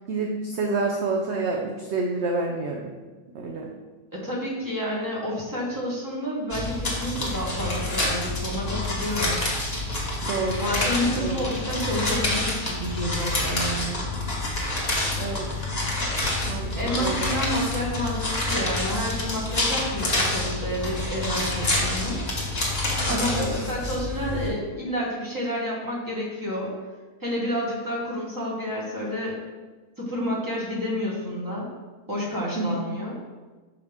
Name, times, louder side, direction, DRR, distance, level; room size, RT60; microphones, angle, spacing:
voice 1, 0.1-2.9 3.3-3.7 10.2-10.7 11.2-11.4 15.2-15.7 16.5-17.3 23.1-23.6 32.6-32.7, right 3 dB, 60° right, 0 dB, 0.8 m, -28 dB
voice 2, 4.1-9.3 10.6-14.0 16.7-22.2 23.1-26.7 27.2-29.3 30.0-31.7 32.1-33.2, equal, 15° right, -4 dB, 1.3 m, -29 dB
sound 1, 6.5-24.5, left 2 dB, 30° left, 1.2 m, -27 dB
6.4 x 4.9 x 3.5 m, 1.3 s
omnidirectional pair, 1.7 m